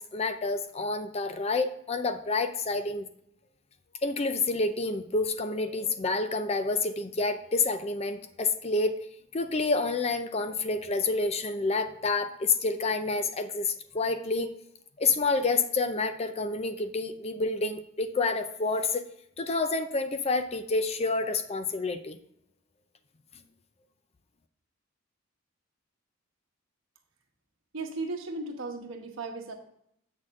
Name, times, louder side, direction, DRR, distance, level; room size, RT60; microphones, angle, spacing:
voice 1, 0.0-3.1 4.0-9.0 9.3-14.5 15.0-19.0 19.4-22.2, left 3 dB, 30° left, 9 dB, 0.5 m, -28 dB
voice 2, 27.7-29.5, right 3 dB, 70° right, 3 dB, 1.2 m, -36 dB
8.0 x 6.3 x 3.6 m, 0.72 s
head